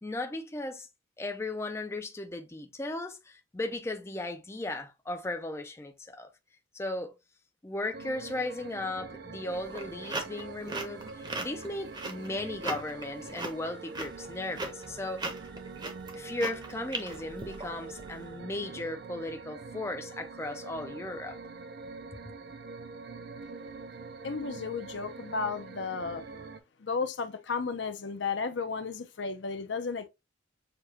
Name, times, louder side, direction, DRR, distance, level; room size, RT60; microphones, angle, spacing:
voice 1, 0.0-0.9 1.2-6.3 6.7-7.1 7.6-15.2 16.1-21.4, left 2 dB, 15° left, 0.3 m, -36 dB
sound 1, 7.9-26.6, right 4 dB, 50° right, 0.4 m, -44 dB
sound 2, 9.5-18.1, right 2 dB, 20° right, 0.7 m, -38 dB
voice 2, 24.2-26.2 26.8-30.1, left 4 dB, 60° left, 0.6 m, -33 dB
6.6 x 2.2 x 2.8 m
head